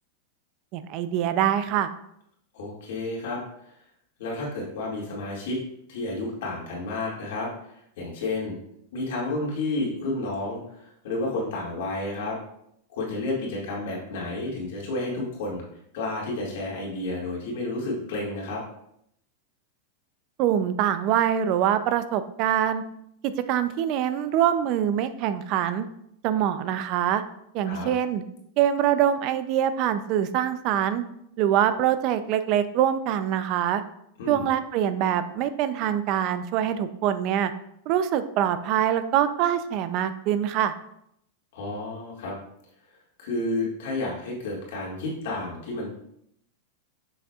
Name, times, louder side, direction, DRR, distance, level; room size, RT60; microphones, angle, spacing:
voice 1, 0.7-1.9 20.4-22.8 23.2-25.9 26.2-27.2 27.5-28.2 28.6-31.0 31.4-33.8 34.3-37.5 37.9-40.7, right 10 dB, 35° right, 11 dB, 0.4 m, -24 dB
voice 2, 2.5-3.4 4.2-5.6 5.9-7.5 8.0-8.6 8.9-12.4 12.9-15.6 15.9-18.6 27.7-27.9 34.2-34.5 41.5-42.3 43.2-45.9, left 2 dB, 60° left, -3 dB, 2.1 m, -31 dB
7.5 x 6.4 x 2.4 m, 0.74 s
supercardioid pair, 175°, 0 cm